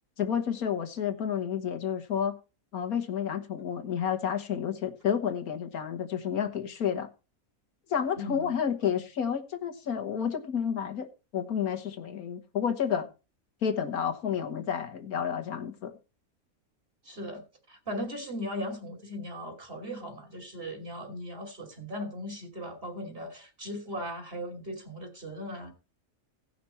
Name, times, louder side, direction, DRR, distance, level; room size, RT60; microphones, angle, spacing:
voice 1, 0.2-2.4 2.7-7.1 7.9-13.1 13.6-15.9, left 8 dB, 80° left, 5 dB, 1.7 m, -30 dB
voice 2, 8.2-8.6 17.0-17.4 17.7-25.7, equal, 40° right, 3 dB, 3.0 m, -38 dB
17.0 x 5.9 x 4.2 m, 0.31 s
omnidirectional pair, 1.5 m